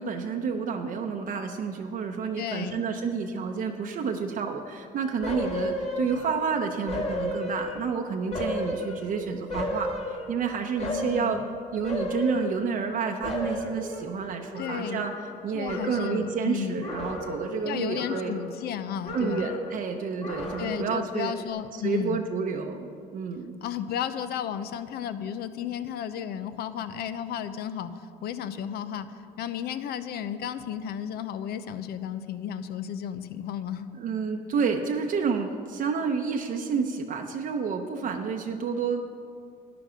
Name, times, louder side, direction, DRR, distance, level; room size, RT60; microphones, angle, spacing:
voice 1, 0.0-11.4 11.7-15.1 15.4-18.3 19.1-21.3 21.8-23.5 34.0-39.1, right 5 dB, 55° right, 3 dB, 0.8 m, -30 dB
voice 2, 2.4-2.8 10.8-11.5 14.6-15.0 15.5-16.9 17.6-19.5 20.6-22.2 23.6-33.9, left 9 dB, 70° left, 12 dB, 0.7 m, -33 dB
sound 1, 5.2-6.5 6.9-8.0 8.3-10.4 10.8-11.4 11.8-13.0 13.2-15.4 15.7-16.3 16.8-17.6 17.9-18.8 19.0-19.8 20.2-21.0 21.4-21.5, left 1 dB, 40° left, 2.0 m, -33 dB
12.0 x 10.0 x 5.0 m, 2.5 s
cardioid pair, 110°, 17 cm